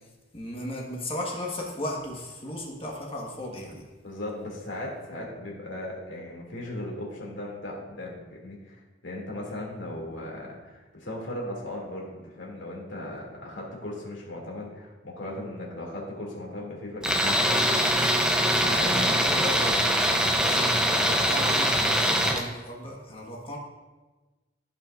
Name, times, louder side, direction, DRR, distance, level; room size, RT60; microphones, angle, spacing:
voice 1, 0.3-3.9 18.9-20.2 20.5-23.6, left 1 dB, 30° left, -1 dB, 1.5 m, -36 dB
voice 2, 4.0-17.8 18.2-19.4, left 1 dB, 70° left, -3 dB, 2.6 m, -37 dB
Tools, 17.0-22.4, equal, 5° right, 0.7 m, -23 dB
15.0 x 5.7 x 2.5 m, 1.2 s
head